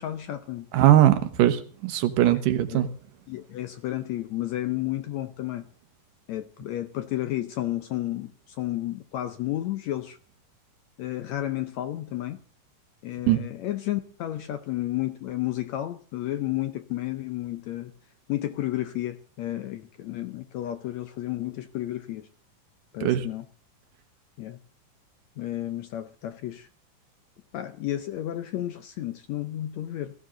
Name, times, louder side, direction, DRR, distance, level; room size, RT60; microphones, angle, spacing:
voice 1, 0.0-0.7 2.7-2.9 3.3-5.6 6.3-10.2 11.0-12.4 13.0-17.9 18.3-22.3 22.9-23.5 24.4-24.6 25.4-26.7 27.5-30.1, left 14 dB, 75° left, 9 dB, 1.7 m, -32 dB
voice 2, 0.7-2.9 13.3-13.4 23.0-23.2, right 13 dB, 75° right, 9 dB, 2.6 m, -20 dB
18.0 x 13.5 x 3.8 m, 0.42 s
omnidirectional pair, 3.9 m